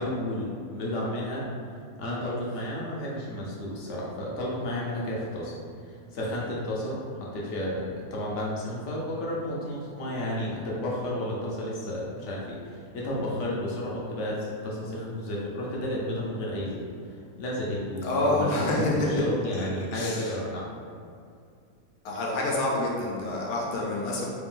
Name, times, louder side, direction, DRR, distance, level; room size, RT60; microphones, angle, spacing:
voice 1, 0.0-1.4 2.0-5.5 5.8-20.7, left 1 dB, 60° left, -4 dB, 0.9 m, -32 dB
voice 2, 18.0-19.2 19.5-20.4 22.0-24.2, left 2 dB, 85° left, -3 dB, 1.2 m, -28 dB
3.3 x 2.5 x 3.6 m, 2.3 s
omnidirectional pair, 1.5 m